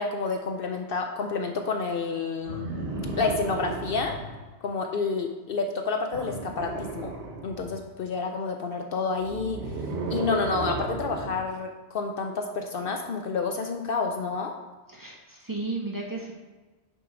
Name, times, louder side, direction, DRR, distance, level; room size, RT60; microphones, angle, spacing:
voice 1, 0.0-2.7 3.2-4.2 4.6-7.1 7.4-9.6 10.1-14.5, left 4 dB, 65° left, 4 dB, 0.7 m, -29 dB
sound 1, 2.5-4.4 6.1-7.9 9.2-11.4 12.8-12.9, right 3 dB, 90° right, 1.3 m, -34 dB
voice 2, 14.9-16.3, right 3 dB, 20° right, -2 dB, 0.9 m, -34 dB
5.4 x 4.6 x 5.9 m, 1.2 s
omnidirectional pair, 1.1 m